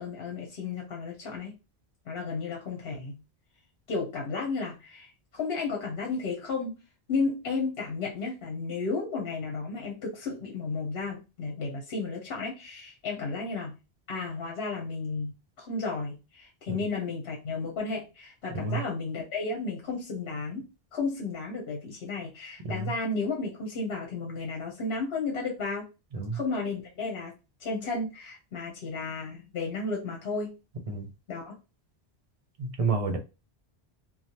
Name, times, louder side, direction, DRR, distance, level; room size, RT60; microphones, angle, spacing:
voice 1, 0.0-1.5 2.1-3.2 3.9-6.8 7.1-13.7 14.1-20.6 20.9-25.9 26.3-27.3 27.6-30.6 31.3-31.5, left 4 dB, 75° left, 1.0 m, -33 dB
voice 2, 32.6-33.2, right 4 dB, 45° right, 0.5 m, -29 dB
3.2 x 2.1 x 2.8 m
omnidirectional pair, 1.0 m